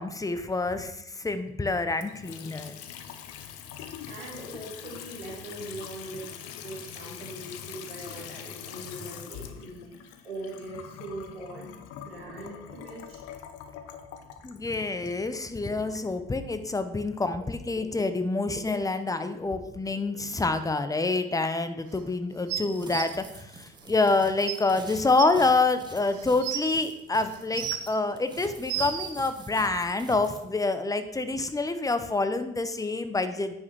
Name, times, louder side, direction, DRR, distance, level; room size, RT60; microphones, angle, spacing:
voice 1, 0.0-2.7 14.4-23.2 23.5-33.6, left 3 dB, 10° left, 10 dB, 0.8 m, -27 dB
Water tap faucet / Sink (filling or washing) / Trickle dribble, 1.9-16.1, left 9 dB, 55° left, 0.8 m, -43 dB
voice 2, 4.0-6.4 6.6-13.2, right 2 dB, 85° right, -3 dB, 1.9 m, -41 dB
sound 1, 22.5-23.0 24.1-24.2 24.5-24.6 25.2-25.3 26.1-26.7 27.3-27.9 28.4-29.1 30.1-30.2, right 10 dB, 70° right, 0.9 m, -32 dB
sound 2, 22.7-27.9 28.2-30.4, right 2 dB, 15° right, 1.2 m, -46 dB
9.4 x 5.4 x 3.6 m, 0.85 s
figure-of-eight pair, 50°, 29 cm